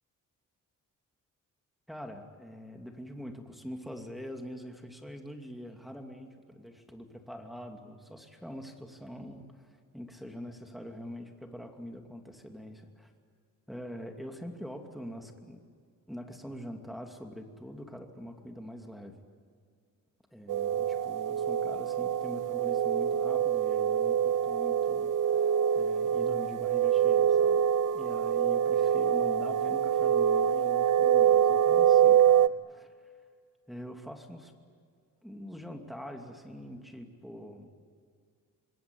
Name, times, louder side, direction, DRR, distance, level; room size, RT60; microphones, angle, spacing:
voice 1, 1.9-13.1 13.7-15.6 16.1-19.2 20.3-27.6 27.9-33.1 33.7-34.5 35.2-37.7, equal, ahead, 3 dB, 2.6 m, -44 dB
sound 1, 20.5-32.5, right 9 dB, 70° right, 0.8 m, -25 dB
26.5 x 21.0 x 9.7 m, 2.1 s
wide cardioid pair, 155°, 33 cm